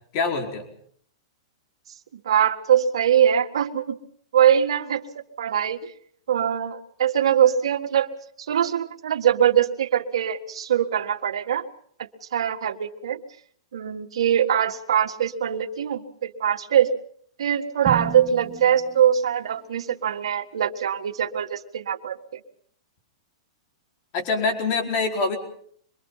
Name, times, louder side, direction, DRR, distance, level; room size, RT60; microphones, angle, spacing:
voice 1, 0.1-0.7 24.1-25.4, left 4 dB, 40° left, 3 dB, 4.7 m, -24 dB
voice 2, 2.3-4.0 4.3-5.0 5.4-5.9 6.3-8.1 8.4-11.7 12.3-13.2 13.7-16.9 17.4-22.4, right 9 dB, 85° right, 4 dB, 1.9 m, -22 dB
Drum, 17.9-19.9, right 9 dB, 25° right, 2.5 m, -34 dB
25.5 x 22.5 x 5.7 m, 0.62 s
hypercardioid pair, 145°, 3 cm